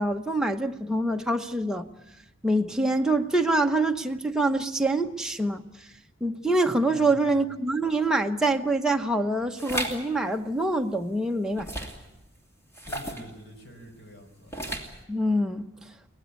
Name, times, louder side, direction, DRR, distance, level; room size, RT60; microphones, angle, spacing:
voice 1, 0.0-1.9 2.4-5.6 6.2-11.7 15.1-15.6, right 2 dB, 5° right, 1.0 m, -25 dB
voice 2, 6.9-7.5 12.9-14.5, left 1 dB, 55° left, 5.0 m, -46 dB
sound 1, 9.6-10.0 11.6-12.1 12.7-13.3 14.5-15.0, right 1 dB, 15° left, 2.8 m, -33 dB
23.5 x 18.5 x 8.3 m
head